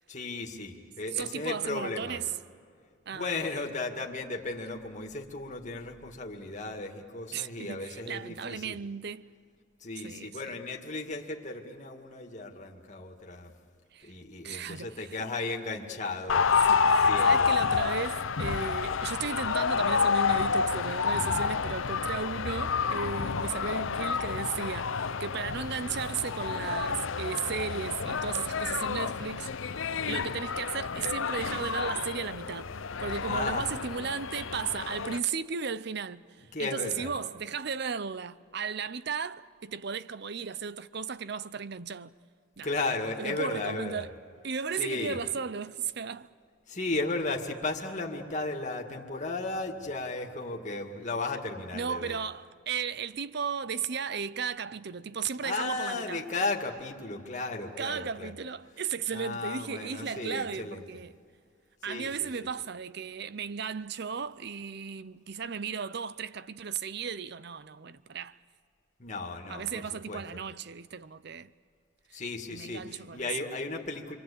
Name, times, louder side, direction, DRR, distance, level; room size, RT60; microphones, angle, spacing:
voice 1, 0.1-2.2 3.1-8.8 9.8-13.5 14.0-16.5 17.0-17.5 33.3-33.7 36.5-37.1 42.6-44.0 44.8-45.2 46.7-52.2 55.4-58.3 59.1-60.9 61.9-62.5 69.0-70.4 72.1-74.2, left 3 dB, 35° left, 2.2 m, -35 dB
voice 2, 1.1-2.3 3.1-3.4 7.3-9.3 10.0-10.6 13.9-14.1 14.4-15.3 16.6-32.7 33.0-42.1 42.6-42.7 43.2-44.1 44.4-46.3 51.7-56.2 57.8-61.2 61.8-68.4 69.5-71.5 72.1-72.2 72.5-73.3, right 6 dB, 55° right, 0.6 m, -35 dB
sound 1, 16.3-35.2, left 5 dB, 75° left, 0.7 m, -29 dB
29.0 x 23.5 x 8.6 m
head